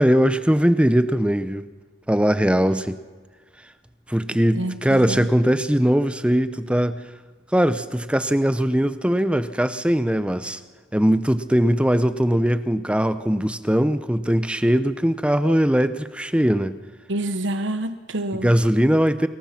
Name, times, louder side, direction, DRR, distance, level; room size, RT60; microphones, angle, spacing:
voice 1, 0.0-1.6 2.1-3.0 4.1-7.0 7.5-10.6 10.9-16.7 18.4-19.3, equal, 5° right, 12 dB, 0.8 m, -20 dB
voice 2, 4.5-5.3 17.1-18.5, right 1 dB, 70° right, 10 dB, 1.1 m, -27 dB
29.0 x 22.5 x 6.0 m, 1.5 s
head